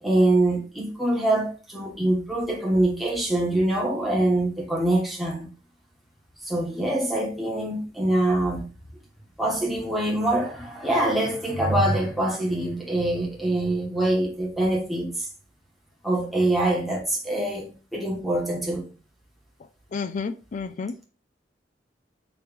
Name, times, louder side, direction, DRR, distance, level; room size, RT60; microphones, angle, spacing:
voice 1, 0.0-5.5 6.4-8.7 9.4-15.3 16.0-18.9, right 1 dB, ahead, 1.2 m, -24 dB
voice 2, 19.9-21.1, left 5 dB, 45° left, 0.4 m, -31 dB
5.1 x 3.1 x 3.1 m
head